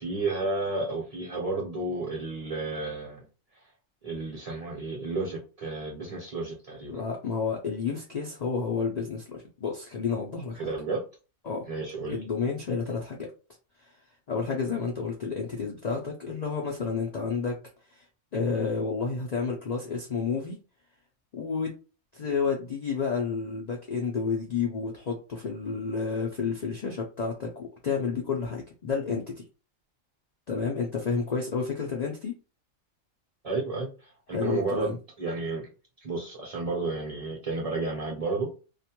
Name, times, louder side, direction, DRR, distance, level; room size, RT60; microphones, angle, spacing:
voice 1, 0.0-3.3 4.0-7.0 10.6-11.0 11.7-12.2 33.4-35.7 36.0-38.5, right 3 dB, 40° right, -2 dB, 0.6 m, -32 dB
voice 2, 6.9-10.7 11.4-11.6 12.1-13.3 13.8-13.9 14.3-17.6 17.9-18.0 18.3-20.6 21.3-21.7 22.1-29.4 30.5-32.4 34.3-35.0, left 5 dB, 85° left, -1 dB, 0.3 m, -30 dB
2.4 x 2.1 x 2.8 m, 0.33 s
omnidirectional pair, 1.4 m